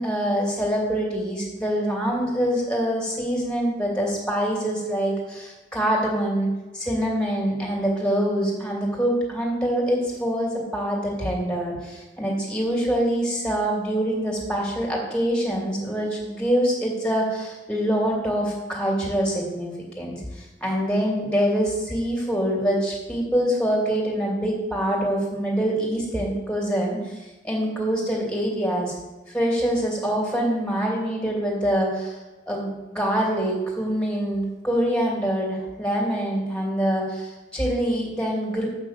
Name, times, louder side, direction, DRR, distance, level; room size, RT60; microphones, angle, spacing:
voice 1, 0.0-6.5 6.7-19.7 20.0-28.9 29.3-32.2 32.5-38.7, equal, 5° left, -2 dB, 2.5 m, -25 dB
7.4 x 6.0 x 7.4 m, 1.1 s
head